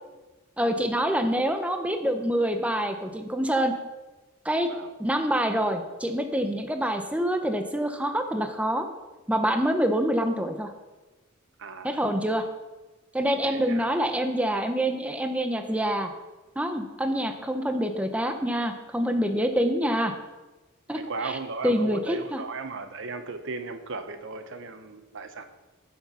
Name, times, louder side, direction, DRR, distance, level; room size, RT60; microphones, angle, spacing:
voice 1, 0.6-3.7 4.4-4.7 5.0-8.9 9.3-10.7 11.8-12.4 13.1-16.1 16.6-20.1 20.9-21.4 21.6-22.4, equal, 5° right, 6 dB, 0.7 m, -26 dB
voice 2, 11.6-12.0 13.4-13.9 20.9-25.4, right 4 dB, 60° right, 9 dB, 0.8 m, -36 dB
9.9 x 7.3 x 5.6 m, 1.1 s
head